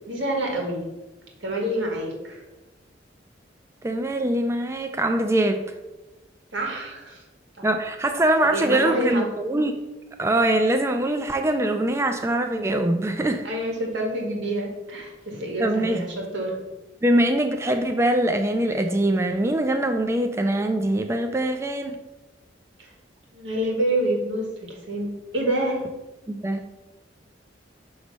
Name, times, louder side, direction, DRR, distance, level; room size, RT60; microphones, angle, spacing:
voice 1, 0.1-0.9 1.4-2.4 6.5-7.2 7.6-7.7 8.4-9.3 13.4-16.6 22.8-22.9 23.3-25.8, right 1 dB, 85° right, 0 dB, 1.7 m, -27 dB
voice 2, 3.8-5.7 7.6-9.7 10.2-13.4 15.6-16.0 17.0-22.0 26.3-26.6, right 1 dB, 15° right, 6 dB, 0.3 m, -23 dB
6.0 x 3.2 x 5.3 m, 1.1 s
head